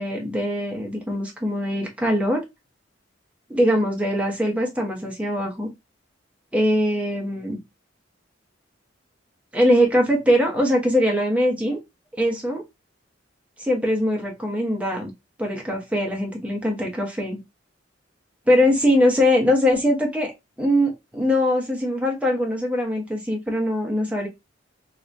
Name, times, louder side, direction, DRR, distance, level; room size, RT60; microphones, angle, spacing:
voice 1, 0.0-2.4 3.5-5.7 6.5-7.6 9.5-11.8 12.2-12.6 13.6-15.1 15.4-17.4 18.5-20.3 20.6-24.3, equal, 5° right, 0 dB, 0.9 m, -22 dB
4.8 x 2.2 x 2.5 m, 0.21 s
head